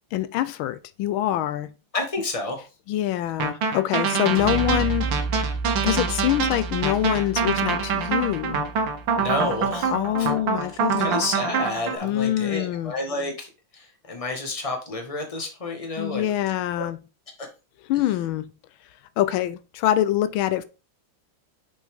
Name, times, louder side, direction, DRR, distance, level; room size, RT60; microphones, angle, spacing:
voice 1, 0.1-1.7 2.9-5.2 5.8-8.7 9.9-11.1 12.0-12.9 16.0-17.0 17.8-18.4 19.2-20.6, left 13 dB, 85° left, 1.4 m, -25 dB
voice 2, 1.9-2.6 9.1-9.9 10.2-10.3 11.0-16.2 16.8-16.9, left 2 dB, 20° left, 1.5 m, -30 dB
sound 1, 3.4-12.0, right 5 dB, 70° right, 1.7 m, -25 dB
sound 2, 4.4-10.0, right 4 dB, 85° right, 2.0 m, -32 dB
6.5 x 5.6 x 3.5 m
omnidirectional pair, 2.2 m